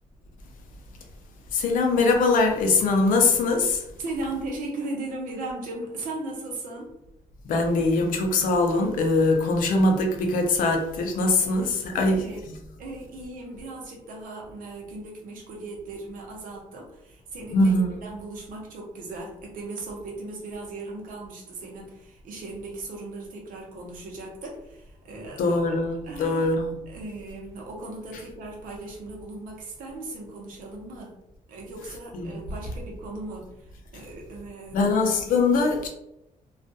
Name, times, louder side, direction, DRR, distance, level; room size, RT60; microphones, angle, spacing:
voice 1, 1.5-3.8 7.5-12.3 17.5-18.0 25.4-26.7 32.1-32.4 34.7-35.9, left 3 dB, 80° left, 0.5 m, -22 dB
voice 2, 4.0-6.9 11.6-12.5 12.8-17.7 18.0-25.6 26.0-26.5 26.9-31.1 31.5-34.8, right 2 dB, 85° right, 0.8 m, -37 dB
2.4 x 2.3 x 2.6 m
cardioid pair, 160°, 14 cm